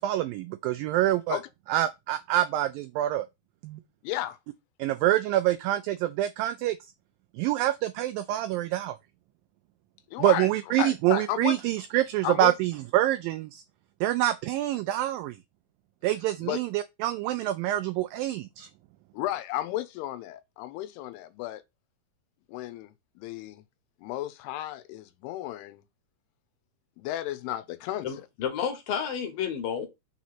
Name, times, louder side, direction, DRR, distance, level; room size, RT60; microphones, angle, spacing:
voice 1, 0.0-1.4 1.7-3.3 3.6-3.8 4.8-6.8 7.4-9.0 10.2-13.6 14.0-15.4 16.0-18.7, right 14 dB, 90° right, 2.0 m, -26 dB
voice 2, 4.0-4.4 10.1-10.5 10.8-11.6 12.2-12.5 16.4-16.6 19.1-21.6 22.5-23.6 24.0-25.8 27.0-28.2, left 14 dB, 90° left, 2.7 m, -33 dB
voice 3, 28.0-29.9, left 8 dB, 70° left, 2.7 m, -31 dB
6.2 x 3.0 x 5.6 m
omnidirectional pair, 4.6 m